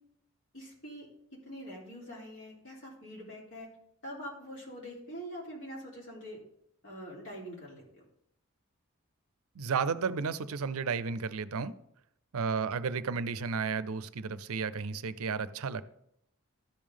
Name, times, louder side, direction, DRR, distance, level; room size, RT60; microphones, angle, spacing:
voice 1, 0.5-3.7 4.0-6.4 6.8-7.8, equal, 60° left, -5 dB, 3.4 m, -44 dB
voice 2, 9.6-11.7 12.3-15.8, right 5 dB, 80° right, 15 dB, 0.5 m, -33 dB
13.0 x 5.2 x 3.6 m, 0.76 s
head